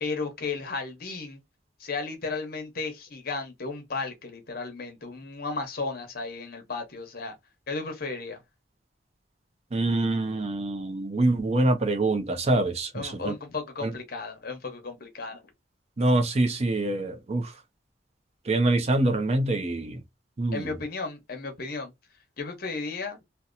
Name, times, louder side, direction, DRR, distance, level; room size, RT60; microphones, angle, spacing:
voice 1, 0.0-1.4 1.8-7.3 7.7-8.4 12.9-15.4 20.5-21.9 22.4-23.2, left 4 dB, 55° left, 0.8 m, -34 dB
voice 2, 9.7-13.3 13.8-13.9 16.0-17.5 18.5-20.0 20.4-20.6, right 2 dB, 35° right, 0.5 m, -25 dB
2.8 x 2.1 x 2.4 m
head